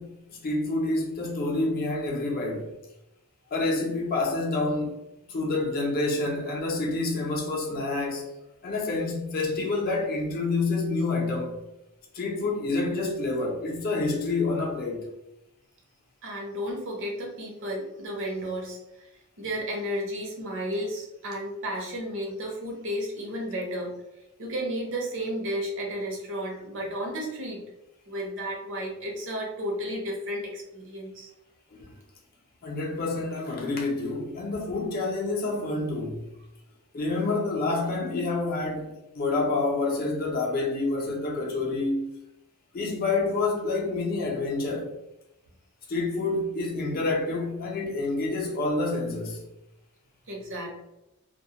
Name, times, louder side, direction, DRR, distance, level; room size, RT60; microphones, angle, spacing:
voice 1, 0.0-2.7 3.5-4.9 5.3-8.3 8.6-11.6 12.1-15.1 31.7-31.9 32.6-36.3 36.9-42.1 42.7-44.9 45.9-49.4, left 3 dB, 45° left, 0.5 m, -28 dB
voice 2, 16.2-19.1 19.4-23.9 24.4-27.6 28.1-31.3 50.3-50.7, equal, 60° right, 0.7 m, -33 dB
2.2 x 2.0 x 2.8 m
head